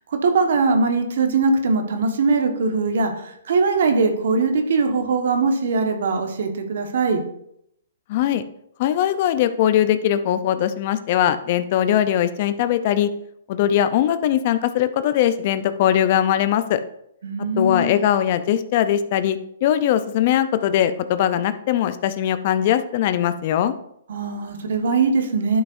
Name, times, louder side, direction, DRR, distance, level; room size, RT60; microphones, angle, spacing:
voice 1, 0.0-7.2 17.2-18.0 24.1-25.6, right 4 dB, 65° right, 5 dB, 1.4 m, -21 dB
voice 2, 8.1-8.4 8.8-13.1 13.5-16.8 17.6-23.7, left 10 dB, 45° left, 12 dB, 0.6 m, -20 dB
11.0 x 6.2 x 2.6 m, 0.74 s
hypercardioid pair, 140°, 0 cm